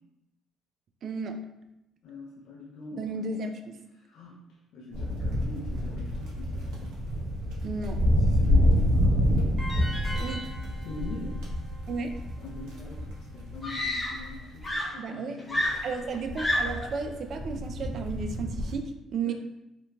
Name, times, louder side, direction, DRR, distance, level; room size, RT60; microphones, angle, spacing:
voice 1, 1.0-1.5 3.0-3.8 7.6-8.0 10.2-10.4 11.9-12.1 15.0-15.4 15.8-19.3, right 4 dB, 55° right, 6 dB, 0.3 m, -33 dB
voice 2, 2.0-3.1 4.0-4.4 4.7-7.0 8.3-9.4 10.8-11.4 12.4-15.6 19.2-19.3, left 3 dB, 75° left, -3 dB, 0.5 m, -42 dB
sound 1, 4.9-14.7 15.6-18.8, equal, 85° right, 0.6 m, -28 dB
sound 2, 9.6-12.7, equal, 30° right, 1.0 m, -42 dB
Screaming, 12.8-12.9 13.6-14.4 14.6-16.9 17.9-18.2, left 1 dB, 15° left, 0.6 m, -30 dB
3.0 x 2.4 x 2.2 m, 0.90 s
cardioid pair, 105°, 0 cm